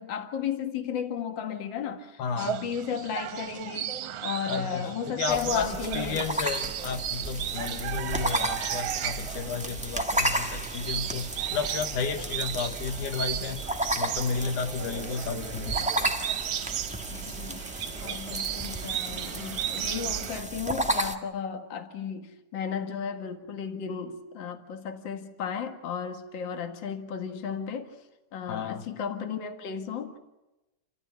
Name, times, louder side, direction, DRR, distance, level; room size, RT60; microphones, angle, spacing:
voice 1, 0.0-6.2 17.1-28.0 28.3-30.2, left 7 dB, 45° left, 2.2 m, -34 dB
voice 2, 2.2-2.6 4.5-4.9 5.2-13.6 14.0-15.9 28.5-28.8, left 5 dB, 80° left, 2.9 m, -32 dB
sound 1, 2.4-20.4, right 11 dB, 65° right, 1.7 m, -35 dB
sound 2, 5.3-21.1, right 1 dB, 10° right, 0.4 m, -33 dB
29.0 x 14.0 x 9.9 m
omnidirectional pair, 3.5 m